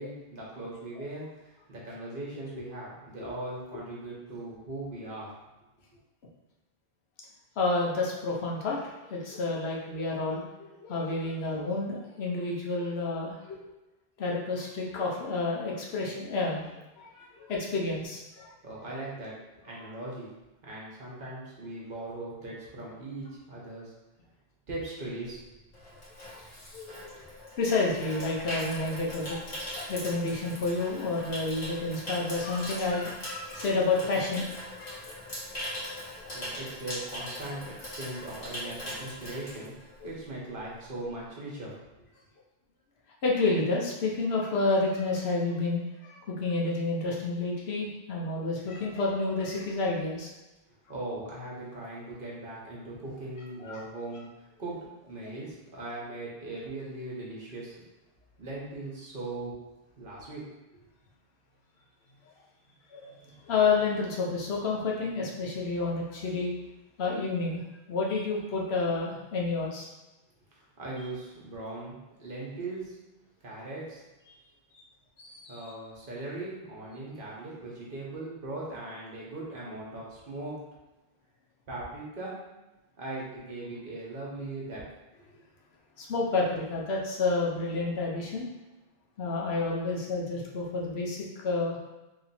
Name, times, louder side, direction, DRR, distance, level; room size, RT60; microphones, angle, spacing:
voice 1, 0.0-5.3 18.6-19.3 19.6-20.3 20.6-23.9 24.7-25.4 36.3-39.7 40.0-41.8 50.9-57.7 58.4-59.5 60.0-60.4 70.5-73.0 73.4-74.0 75.5-80.6 81.7-82.4 83.0-84.8, right 2 dB, 55° right, -4 dB, 1.1 m, -39 dB
voice 2, 7.6-13.6 14.2-18.5 19.7-19.8 26.3-26.4 26.7-27.2 27.6-34.5 34.8-35.2 43.2-50.3 53.6-53.8 62.9-66.5 67.0-67.6 67.9-69.9 75.2-75.7 86.0-88.5 89.2-91.8, left 3 dB, 80° left, -3 dB, 1.0 m, -30 dB
Water tap faucet / Sink (filling or washing), 25.3-40.3 40.5-40.8, left 1 dB, 40° left, 1.3 m, -40 dB
3.1 x 2.8 x 4.1 m, 1.1 s
omnidirectional pair, 1.1 m